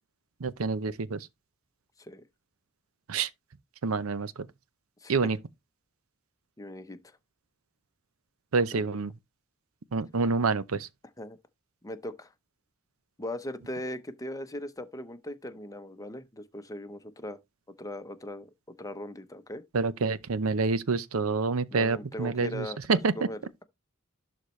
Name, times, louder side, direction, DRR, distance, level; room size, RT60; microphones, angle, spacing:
voice 1, 0.4-1.3 3.1-3.3 3.8-4.5 5.1-5.4 8.5-9.1 9.9-10.9 19.7-23.3, right 4 dB, 80° right, 0.7 m, -27 dB
voice 2, 6.6-7.0 8.7-8.8 11.2-11.4 11.8-12.3 13.2-17.4 17.8-19.6 21.7-23.4, left 1 dB, 15° left, 0.8 m, -39 dB
11.5 x 4.0 x 3.1 m
head